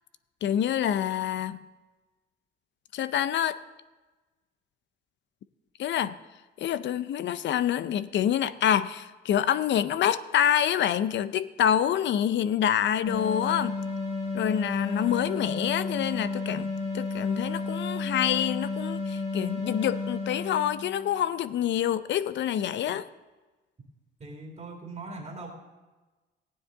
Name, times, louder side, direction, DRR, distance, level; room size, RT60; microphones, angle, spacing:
voice 1, 0.4-1.6 2.9-3.6 5.8-6.1 6.6-13.8 14.3-23.0, left 10 dB, 65° left, 15 dB, 0.5 m, -27 dB
sound 1, 13.1-21.2, left 3 dB, 35° left, 2.4 m, -32 dB
voice 2, 24.2-25.5, right 3 dB, 30° right, 0 dB, 2.3 m, -40 dB
15.0 x 9.5 x 3.8 m, 1.2 s
cardioid pair, 90°, 20 cm